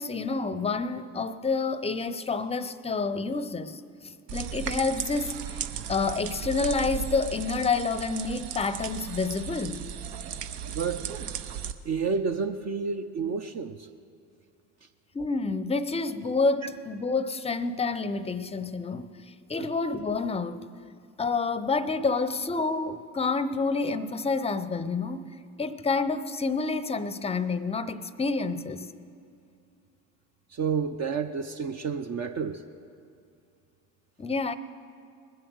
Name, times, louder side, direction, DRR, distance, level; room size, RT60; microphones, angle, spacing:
voice 1, 0.0-5.4 5.9-9.9 15.1-19.1 19.5-20.7 21.2-25.3 25.6-28.9 34.2-34.6, left 4 dB, 15° left, 14 dB, 0.6 m, -28 dB
sound 1, 4.3-11.7, right 8 dB, 65° right, 0.9 m, -36 dB
voice 2, 10.7-11.0 11.8-13.9 30.5-32.6, right 5 dB, 40° right, 6 dB, 0.7 m, -30 dB
20.5 x 7.9 x 6.4 m, 2.5 s
hypercardioid pair, 65°, 42 cm